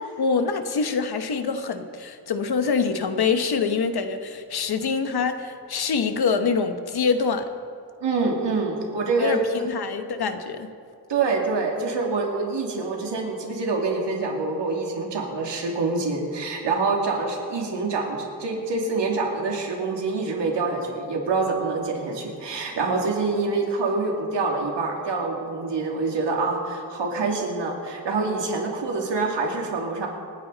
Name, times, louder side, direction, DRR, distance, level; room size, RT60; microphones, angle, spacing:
voice 1, 0.2-7.5 9.2-10.7, left 5 dB, 65° left, 8 dB, 1.1 m, -25 dB
voice 2, 8.0-9.4 11.1-30.1, right 3 dB, 90° right, 0 dB, 2.6 m, -26 dB
27.5 x 9.6 x 4.0 m, 2.3 s
wide cardioid pair, 160°, 41 cm